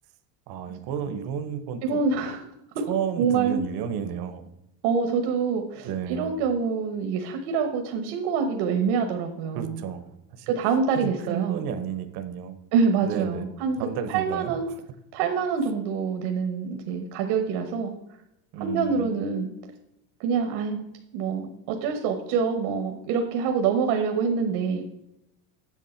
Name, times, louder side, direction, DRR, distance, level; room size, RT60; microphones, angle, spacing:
voice 1, 0.5-2.0 2.8-4.5 5.8-6.3 9.5-10.5 10.9-12.6 13.0-13.5 13.8-14.5 18.5-19.2, right 8 dB, 50° right, 9 dB, 0.8 m, -32 dB
voice 2, 1.8-2.4 3.2-3.6 4.8-9.8 10.5-11.6 12.7-13.8 14.1-14.7 15.1-17.9 18.6-19.5 20.2-20.8 21.1-24.8, right 5 dB, 70° right, 5 dB, 1.1 m, -26 dB
8.5 x 6.0 x 4.3 m, 0.88 s
cardioid pair, 150°, 50 cm